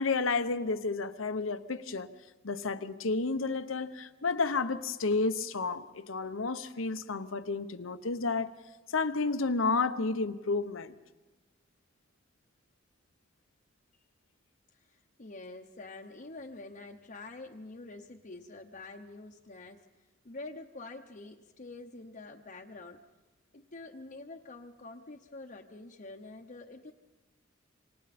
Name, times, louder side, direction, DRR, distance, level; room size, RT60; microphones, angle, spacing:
voice 1, 0.0-2.1 2.4-8.6 8.9-10.9, left 4 dB, 85° left, 1.0 m, -31 dB
voice 2, 14.7-19.9 20.2-23.0 23.5-26.9, left 2 dB, 40° left, 0.9 m, -46 dB
28.0 x 25.5 x 4.3 m
head